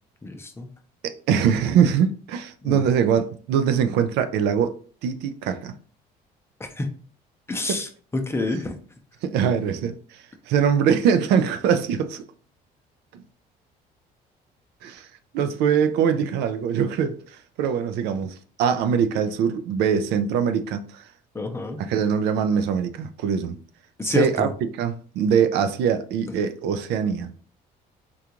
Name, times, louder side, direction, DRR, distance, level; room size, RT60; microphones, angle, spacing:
voice 1, 0.2-0.7 2.6-2.8 6.6-6.9 7.5-8.7 21.3-21.8 24.0-24.5, left 2 dB, 15° left, 0.6 m, -28 dB
voice 2, 1.0-4.8 5.0-5.7 7.7-7.8 9.2-12.2 13.1-13.2 14.8-15.1 15.3-21.1 21.8-23.6 24.0-24.5 24.8-27.3, right 7 dB, 80° right, 0.4 m, -23 dB
3.6 x 2.4 x 2.8 m
cardioid pair, 110°, 17 cm